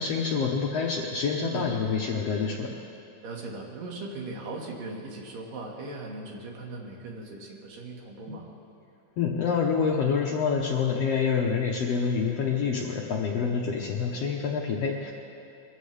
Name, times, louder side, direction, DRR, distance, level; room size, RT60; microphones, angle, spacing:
voice 1, 0.0-2.7 9.2-15.1, left 5 dB, 70° left, -1 dB, 1.6 m, -27 dB
voice 2, 3.2-8.5, right 2 dB, 75° right, -1 dB, 3.4 m, -39 dB
23.0 x 15.0 x 3.4 m, 2.9 s
omnidirectional pair, 3.9 m